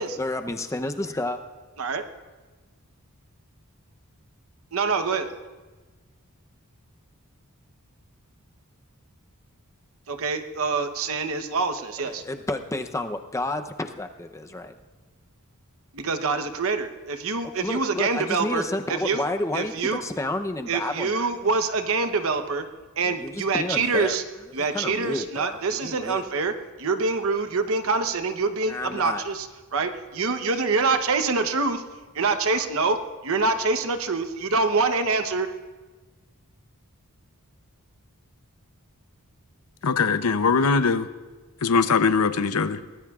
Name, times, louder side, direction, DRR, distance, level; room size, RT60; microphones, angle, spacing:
voice 1, 0.0-1.4 12.1-14.7 17.4-21.2 23.0-24.2 24.6-26.3 28.6-29.2, left 1 dB, 15° left, 6 dB, 0.7 m, -31 dB
voice 2, 4.7-5.3 10.1-12.2 15.9-18.6 19.0-19.2 19.5-20.0 20.7-22.6 23.0-24.2 24.5-26.5 26.8-29.5 29.7-31.8 32.1-33.0 33.2-35.5, right 4 dB, 65° right, 9 dB, 0.9 m, -25 dB
voice 3, 39.8-41.1 41.6-42.8, left 5 dB, 80° left, 11 dB, 0.7 m, -21 dB
23.0 x 18.0 x 2.4 m, 1.3 s
head